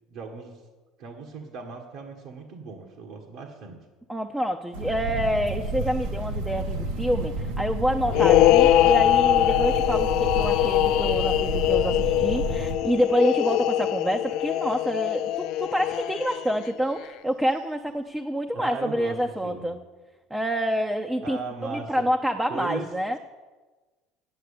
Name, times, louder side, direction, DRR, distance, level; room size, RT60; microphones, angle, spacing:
voice 1, 0.1-0.6 1.0-3.8 18.5-19.8 21.2-22.1 22.5-22.8, right 4 dB, 70° right, 0 dB, 1.6 m, -37 dB
voice 2, 4.1-19.8 20.3-23.2, equal, 5° right, 4 dB, 0.6 m, -27 dB
sound 1, 4.7-12.8, right 1 dB, 90° right, 1.7 m, -30 dB
sound 2, 8.1-16.7, left 14 dB, 65° left, 0.3 m, -22 dB
9.5 x 7.7 x 8.4 m, 1.3 s
supercardioid pair, 115°, 0 cm